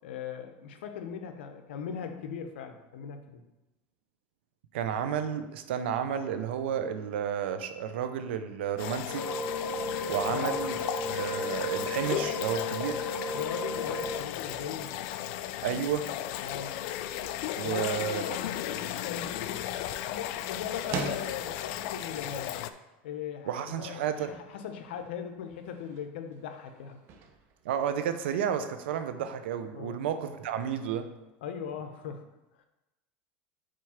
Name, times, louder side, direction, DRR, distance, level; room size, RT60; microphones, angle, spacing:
voice 1, 0.0-3.5 10.3-10.8 13.3-14.9 16.4-16.8 17.6-19.6 20.1-22.5 23.0-27.0 29.7-30.0 31.4-32.3, left 7 dB, 85° left, 6 dB, 0.8 m, -39 dB
voice 2, 4.7-9.2 10.1-10.8 11.1-13.0 15.6-16.1 17.6-18.2 23.5-24.3 27.6-31.1, right 8 dB, 85° right, 9 dB, 0.6 m, -31 dB
sound 1, 8.8-22.7, left 12 dB, 65° left, 0.4 m, -35 dB
sound 2, 9.1-14.2, left 1 dB, 25° left, 1.3 m, -34 dB
sound 3, 18.9-28.6, right 4 dB, 45° right, 0.9 m, -45 dB
5.1 x 4.6 x 5.7 m, 1.0 s
supercardioid pair, 120°, 6 cm